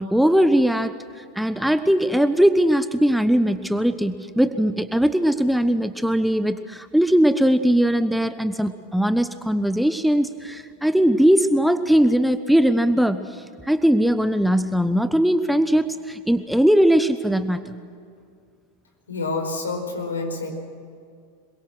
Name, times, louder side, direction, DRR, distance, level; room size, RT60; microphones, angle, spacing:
voice 1, 0.0-17.7, equal, ahead, 11 dB, 0.9 m, -20 dB
voice 2, 19.1-20.5, left 3 dB, 75° left, 2 dB, 4.8 m, -28 dB
26.5 x 22.5 x 6.2 m, 2.3 s
figure-of-eight pair, 85°, 0 cm